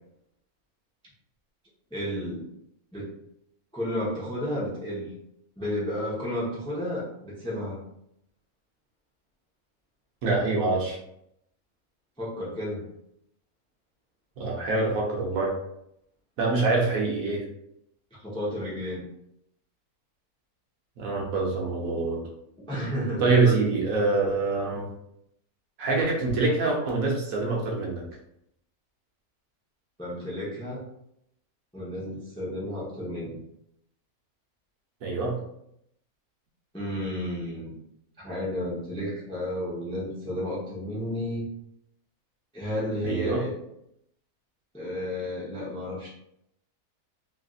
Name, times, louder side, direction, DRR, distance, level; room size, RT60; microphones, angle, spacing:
voice 1, 1.9-2.4 2.9-3.1 3.7-5.1 5.6-7.8 12.2-12.9 18.1-19.0 22.7-23.5 30.0-30.8 31.7-33.4 36.7-37.7 38.2-41.4 42.5-43.5 44.7-46.1, left 1 dB, 5° left, -6 dB, 0.5 m, -32 dB
voice 2, 10.2-11.0 14.4-15.5 16.4-17.4 21.0-22.3 23.2-24.9 25.8-28.0 35.0-35.4 43.0-43.4, right 3 dB, 70° right, -2 dB, 1.2 m, -25 dB
3.2 x 2.5 x 2.4 m, 0.77 s
omnidirectional pair, 1.6 m